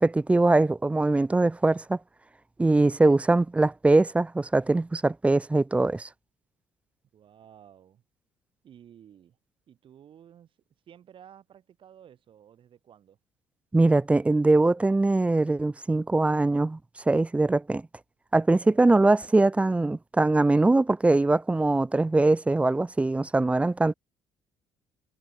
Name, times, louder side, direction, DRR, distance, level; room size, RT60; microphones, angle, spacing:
voice 1, 0.0-2.0 2.6-6.1 13.7-16.8 17.1-17.8 18.3-23.9, right 2 dB, 10° right, 0.4 m, -22 dB
voice 2, 7.1-8.0 8.6-9.4 9.7-10.6 10.9-13.2 18.6-18.9, right 9 dB, 55° right, 5.2 m, -53 dB
hypercardioid pair, 60°, 10 cm